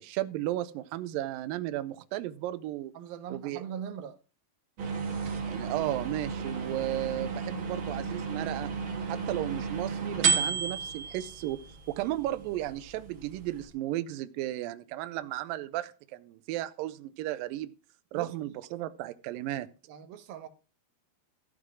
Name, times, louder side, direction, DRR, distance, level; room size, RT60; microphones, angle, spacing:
voice 1, 0.0-2.9 3.3-3.6 5.5-8.7 9.1-11.6 11.9-17.7 18.1-19.7, right 14 dB, 85° right, 2.0 m, -34 dB
voice 2, 2.9-4.2 18.1-18.4 19.9-20.5, right 9 dB, 70° right, 2.6 m, -40 dB
sound 1, 4.8-13.7, right 5 dB, 50° right, 1.6 m, -33 dB
13.5 x 4.9 x 6.2 m
omnidirectional pair, 4.7 m